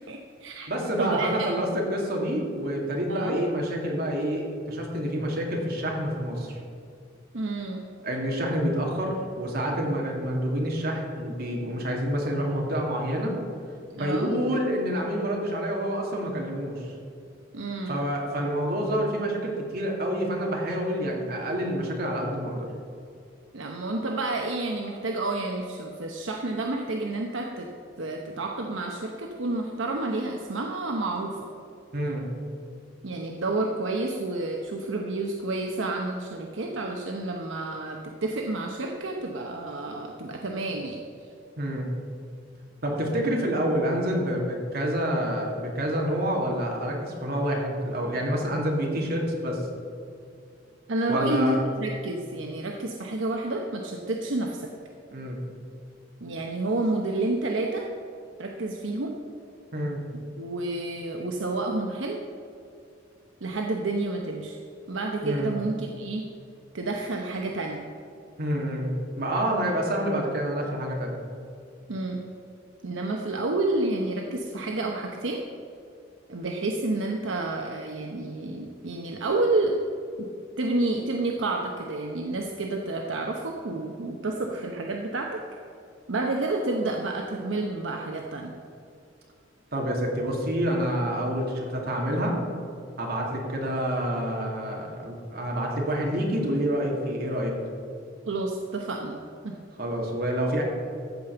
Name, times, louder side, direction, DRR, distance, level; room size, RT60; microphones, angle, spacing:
voice 1, 0.1-0.7 1.0-1.5 3.1-3.4 7.3-7.8 13.9-14.3 17.5-18.0 23.5-27.7 28.0-31.4 33.0-41.0 50.9-54.7 56.2-57.9 58.4-59.1 60.4-62.2 63.4-64.6 64.9-66.2 66.7-67.9 71.9-72.2 72.8-75.4 76.3-79.8 80.2-80.3 80.6-85.4 86.1-88.5 98.3-99.2 99.4-99.6, right 2 dB, 80° right, 2 dB, 0.8 m, -29 dB
voice 2, 0.7-6.6 8.0-13.3 14.0-16.9 17.9-22.7 31.9-32.3 41.6-41.9 42.8-49.6 51.1-51.6 55.1-55.4 59.7-60.0 65.2-65.5 68.4-71.1 89.7-92.4 93.0-97.5 99.8-100.6, equal, 55° right, -1 dB, 2.3 m, -28 dB
14.0 x 5.1 x 7.0 m, 2.5 s
head